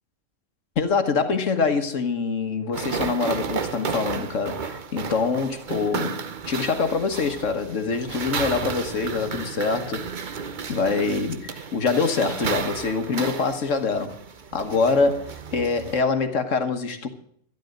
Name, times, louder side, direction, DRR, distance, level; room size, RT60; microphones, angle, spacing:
voice 1, 0.8-6.2 6.5-10.1 10.7-14.2 14.5-17.1, left 4 dB, 70° left, 1.6 m, -24 dB
sound 1, 2.7-16.0, right 6 dB, 45° right, 0.9 m, -33 dB
12.0 x 12.0 x 6.5 m
omnidirectional pair, 1.3 m